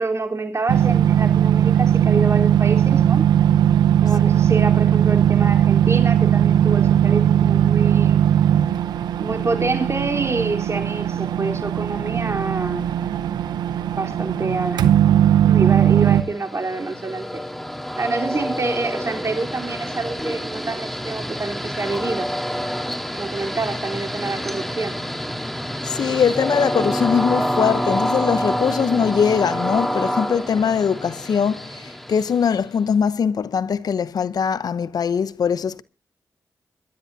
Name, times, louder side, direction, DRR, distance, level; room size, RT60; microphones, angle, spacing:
voice 1, 0.0-3.3 4.0-8.2 9.2-12.9 13.9-14.9 15.4-17.4 18.0-22.3 23.1-25.0, right 3 dB, 45° right, 3.7 m, -27 dB
sound 1, 0.7-16.2, right 10 dB, 90° right, 0.8 m, -18 dB
Train, 16.0-32.8, equal, 5° left, 3.8 m, -27 dB
voice 2, 25.8-35.8, left 7 dB, 70° left, 0.8 m, -21 dB
26.5 x 12.5 x 2.8 m
supercardioid pair, 45°, 7 cm